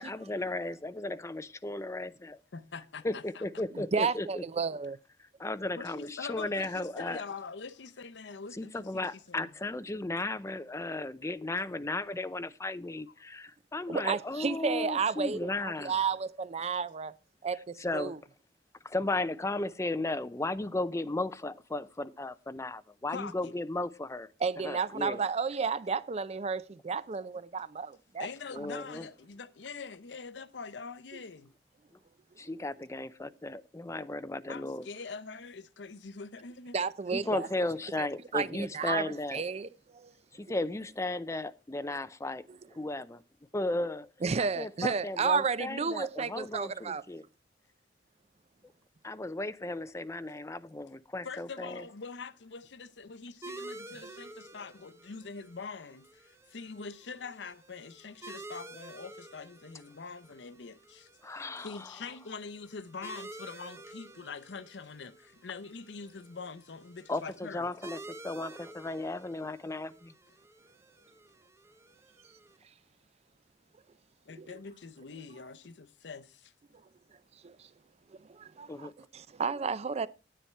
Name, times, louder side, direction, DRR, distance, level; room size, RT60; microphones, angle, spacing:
voice 1, 0.0-2.4 3.0-4.4 5.4-7.2 8.5-15.9 17.8-18.1 18.8-24.3 24.6-25.2 28.5-29.1 31.9-32.0 32.4-34.9 37.1-39.4 40.3-43.2 43.5-44.1 44.6-47.2 49.0-51.8 61.2-62.0 67.1-70.1 78.7-78.9, left 2 dB, 15° left, 0.5 m, -35 dB
voice 2, 2.5-3.4 5.8-9.5 23.1-23.5 28.2-31.5 34.5-36.8 51.2-67.7 74.3-76.5, left 5 dB, 75° left, 0.7 m, -44 dB
voice 3, 3.7-5.0 13.9-17.1 17.4-18.2 24.4-28.3 36.7-37.5 38.0-38.1 38.3-40.1 40.5-40.6 42.5-42.6 44.2-47.0 53.9-54.0 74.4-74.5 77.4-77.7 78.1-80.1, right 5 dB, 35° right, 0.5 m, -32 dB
sound 1, 53.4-72.6, right 2 dB, 15° right, 0.8 m, -50 dB
10.0 x 8.6 x 4.4 m
head